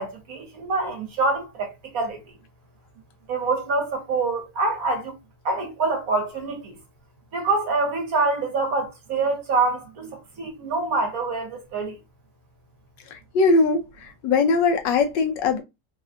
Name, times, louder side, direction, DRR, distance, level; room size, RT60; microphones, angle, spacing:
voice 1, 0.0-2.2 3.3-5.2 5.4-6.8 7.3-12.0, right 3 dB, 60° right, 1.1 m, -25 dB
voice 2, 13.1-15.6, left 4 dB, 85° left, 1.3 m, -21 dB
3.4 x 2.2 x 2.5 m
omnidirectional pair, 1.9 m